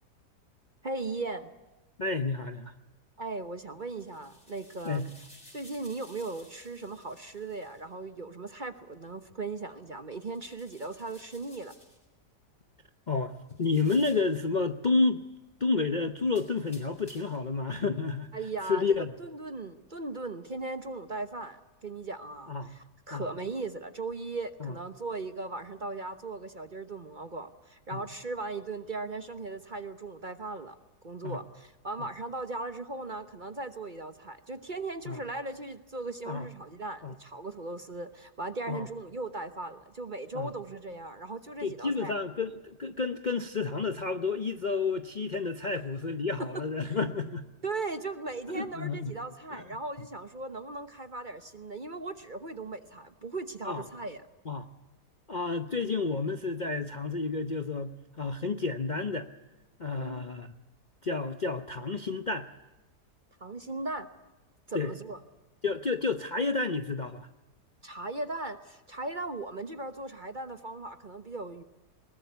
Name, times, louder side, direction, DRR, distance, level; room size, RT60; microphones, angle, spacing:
voice 1, 0.8-1.5 3.2-5.1 5.5-11.8 18.3-30.8 31.0-42.2 46.4-47.0 47.6-54.2 60.0-60.3 63.4-64.1 64.7-65.2 67.8-71.6, right 3 dB, 35° right, 11 dB, 1.0 m, -38 dB
voice 2, 2.0-2.7 4.8-5.1 13.1-15.2 15.6-18.4 18.7-19.1 22.5-22.7 23.1-23.2 24.6-24.7 27.9-28.0 31.2-31.4 35.1-35.2 36.3-36.5 37.0-37.1 38.7-38.9 40.3-40.5 41.6-47.5 48.5-49.1 49.5-49.6 53.6-53.8 54.5-54.7 55.3-59.3 59.8-60.5 61.0-62.5 64.7-64.9 65.6-67.3, left 4 dB, 40° left, 8 dB, 0.7 m, -30 dB
sound 1, 3.7-7.8 10.2-12.1 13.5-14.4 16.3-17.5, left 1 dB, 20° left, 5.1 m, -57 dB
21.0 x 19.5 x 8.2 m, 1.1 s
omnidirectional pair, 1.8 m